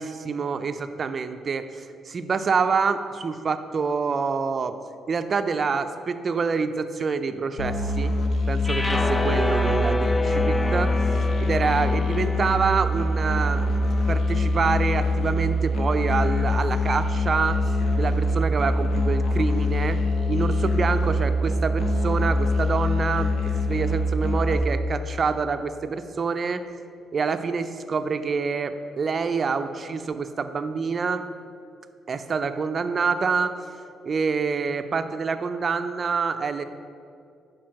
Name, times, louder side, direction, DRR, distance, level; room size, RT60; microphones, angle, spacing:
voice 1, 0.0-4.8 5.1-8.1 8.5-11.0 11.4-13.6 14.1-17.6 18.0-20.0 20.3-23.3 23.7-26.6 27.1-31.3 32.1-33.5 34.0-36.6, right 5 dB, 45° right, 10 dB, 0.4 m, -26 dB
Musical instrument, 7.6-24.5, left 1 dB, 65° left, 0.9 m, -24 dB
sound 1, 8.6-14.9, left 2 dB, 20° left, 0.4 m, -29 dB
5.8 x 4.6 x 6.3 m, 2.4 s
cardioid pair, 90°, 0 cm